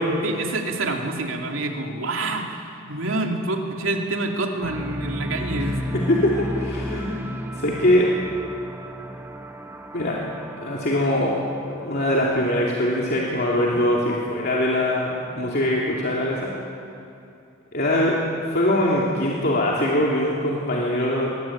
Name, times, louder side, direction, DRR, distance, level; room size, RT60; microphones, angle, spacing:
voice 1, 0.2-5.8 13.7-13.8, right 2 dB, 90° right, 2 dB, 2.6 m, -27 dB
sound 1, 4.6-12.8, equal, 10° right, 1.6 m, -33 dB
voice 2, 5.9-7.1 7.5-8.1 9.9-10.2 10.6-16.5 17.7-18.2 18.5-21.3, left 1 dB, 50° left, -4 dB, 2.8 m, -22 dB
21.5 x 20.0 x 8.7 m, 2.6 s
head